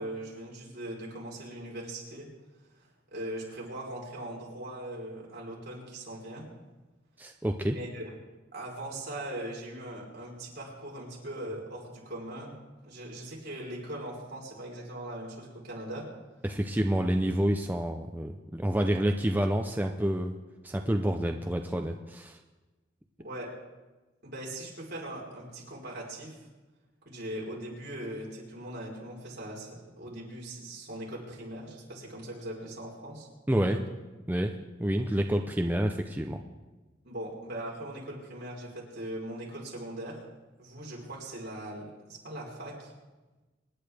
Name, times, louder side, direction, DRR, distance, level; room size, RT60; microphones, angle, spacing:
voice 1, 0.0-2.3 2.8-6.5 7.7-8.1 8.5-12.5 12.8-16.1 23.2-23.5 24.2-26.5 27.1-33.3 33.6-33.8 37.0-40.2 40.6-42.9, right 1 dB, 55° right, -3 dB, 4.0 m, -40 dB
voice 2, 7.2-7.8 16.4-20.3 20.6-22.4 33.5-33.8 34.3-36.4, right 1 dB, 10° right, 4 dB, 0.5 m, -28 dB
25.5 x 10.5 x 3.5 m, 1.2 s
head